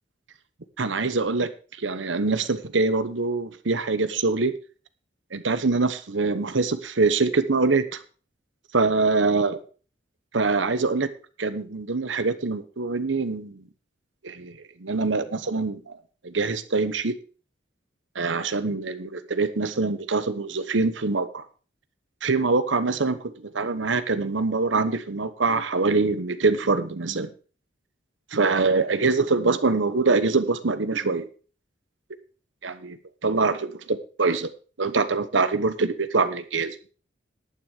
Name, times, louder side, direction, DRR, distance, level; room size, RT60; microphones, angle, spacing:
voice 1, 0.8-1.5 1.8-4.5 5.3-8.0 8.7-9.6 10.3-11.1 11.4-13.6 14.2-16.0 16.2-17.1 18.1-21.4 22.2-27.3 28.3-31.3 32.6-34.5 34.8-36.7, right 3 dB, 85° right, 12 dB, 1.0 m, -24 dB
11.0 x 9.3 x 5.0 m, 0.38 s
head